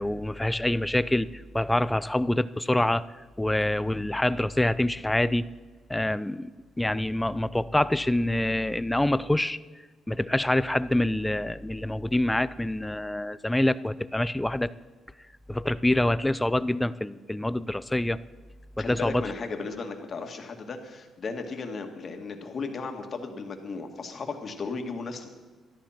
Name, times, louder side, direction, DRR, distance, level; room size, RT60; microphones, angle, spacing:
voice 1, 0.0-3.0 3.4-5.5 5.9-6.5 6.8-9.6 10.1-14.7 15.5-18.2 18.8-19.3, left 1 dB, 10° left, 17 dB, 0.5 m, -26 dB
voice 2, 18.8-25.3, left 4 dB, 45° left, 5 dB, 1.9 m, -35 dB
13.5 x 11.5 x 5.9 m, 1.3 s
cardioid pair, 90°, 0 cm